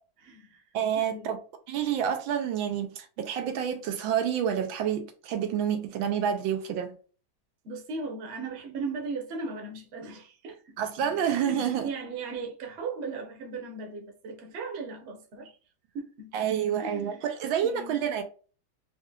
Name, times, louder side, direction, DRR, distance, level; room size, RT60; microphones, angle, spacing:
voice 1, 0.2-0.6 1.0-1.4 7.6-10.8 11.2-15.5 15.9-16.5 16.8-17.2 17.6-18.0, right 4 dB, 45° right, 1.0 m, -38 dB
voice 2, 0.7-1.4 1.7-6.9 10.8-11.9 16.3-18.2, right 8 dB, 85° right, 1.4 m, -28 dB
4.2 x 2.7 x 2.4 m
omnidirectional pair, 2.2 m